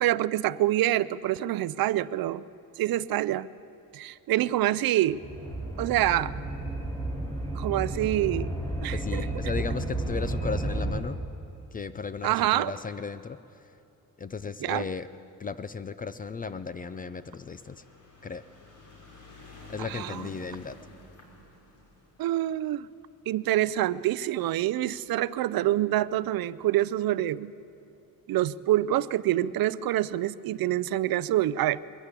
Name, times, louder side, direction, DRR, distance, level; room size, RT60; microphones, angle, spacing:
voice 1, 0.0-2.5 2.8-3.5 3.9-5.2 5.8-6.3 7.5-8.5 8.8-9.3 12.2-12.7 14.6-14.9 19.8-20.3 22.2-22.9 23.3-27.5 28.3-31.8, right 14 dB, 65° right, 18 dB, 0.5 m, -26 dB
sound 1, 5.1-11.0, right 1 dB, 10° left, 2.6 m, -32 dB
voice 2, 8.9-11.2 11.7-13.4 14.2-15.1 15.4-17.8 18.2-18.4 19.7-20.8, left 5 dB, 25° left, 13 dB, 0.4 m, -35 dB
sound 2, 16.4-24.9 25.7-25.8 26.0-26.1 26.4-26.5, left 2 dB, 50° left, 3.7 m, -51 dB
22.0 x 14.5 x 8.3 m, 2.8 s
cardioid pair, 170°, 38 cm